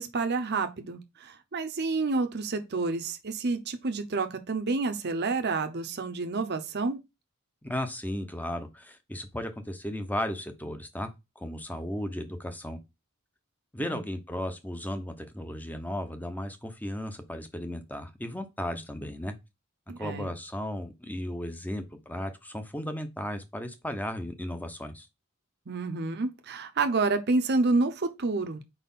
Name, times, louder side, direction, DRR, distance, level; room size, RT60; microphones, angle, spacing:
voice 1, 0.0-7.0 13.8-14.0 19.9-20.3 25.7-28.6, right 3 dB, 50° right, 0.7 m, -29 dB
voice 2, 7.6-11.1 11.4-12.8 13.7-19.3 20.0-25.1, left 1 dB, 10° left, 0.8 m, -35 dB
4.7 x 4.2 x 5.5 m
head